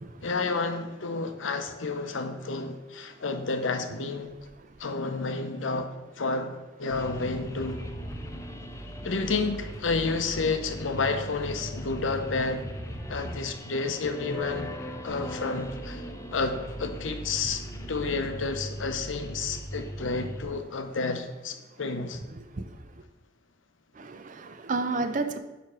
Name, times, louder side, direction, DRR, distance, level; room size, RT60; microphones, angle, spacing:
voice 1, 0.2-4.3 4.8-5.9 6.2-7.8 9.0-12.7 13.1-14.7 15.0-16.0 16.3-17.6 17.9-22.2, left 3 dB, 90° left, 7 dB, 0.8 m, -30 dB
sound 1, 6.9-20.4, equal, 15° left, 0.6 m, -39 dB
voice 2, 22.3-22.6 24.0-25.4, right 3 dB, 40° right, 9 dB, 0.5 m, -31 dB
9.2 x 3.3 x 5.8 m, 1.1 s
head